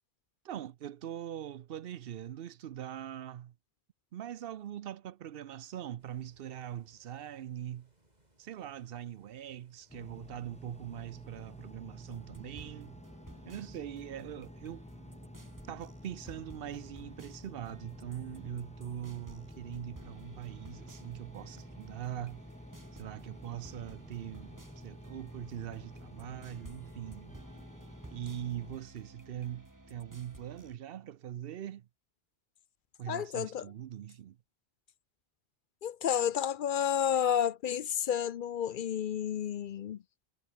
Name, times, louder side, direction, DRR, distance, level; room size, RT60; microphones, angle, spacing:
voice 1, 0.4-3.5 4.1-7.9 8.4-13.0 13.4-14.9 15.7-22.4 22.9-27.4 28.1-31.9 33.0-34.4, right 11 dB, 70° right, 0.8 m, -42 dB
sound 1, 6.0-11.7, right 1 dB, 45° right, 5.3 m, -70 dB
Engine, 9.9-28.8, left 1 dB, 5° left, 1.2 m, -50 dB
sound 2, 12.0-30.8, right 2 dB, 20° right, 1.7 m, -54 dB
voice 2, 33.1-33.7 35.8-40.0, left 9 dB, 60° left, 0.7 m, -31 dB
omnidirectional pair, 1.0 m